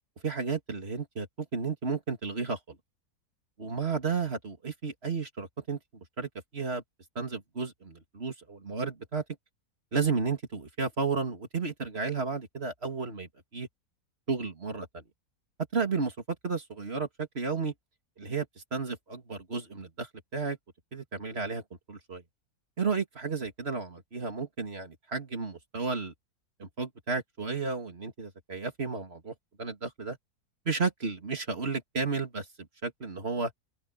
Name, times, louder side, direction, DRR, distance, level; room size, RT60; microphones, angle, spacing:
voice 1, 0.2-2.8 3.6-5.8 6.2-6.8 7.2-9.2 9.9-13.7 14.3-15.0 15.7-16.1 16.4-17.7 18.2-18.5 18.7-20.6 20.9-21.6 21.9-22.2 22.8-26.1 26.6-30.2 30.7-32.5 32.8-33.5, right 4 dB, 40° right, 2.6 m, -33 dB
open air
omnidirectional pair, 1.7 m